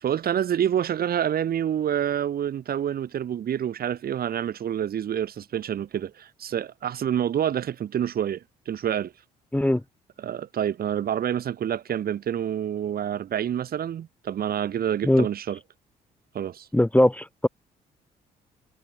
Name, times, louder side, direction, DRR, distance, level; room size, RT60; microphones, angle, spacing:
voice 1, 0.0-9.1 10.2-15.6 16.3-16.7, right 9 dB, 60° right, 1.4 m, -27 dB
voice 2, 16.7-17.5, left 1 dB, 10° left, 0.9 m, -20 dB
supercardioid pair, 55°, 18 cm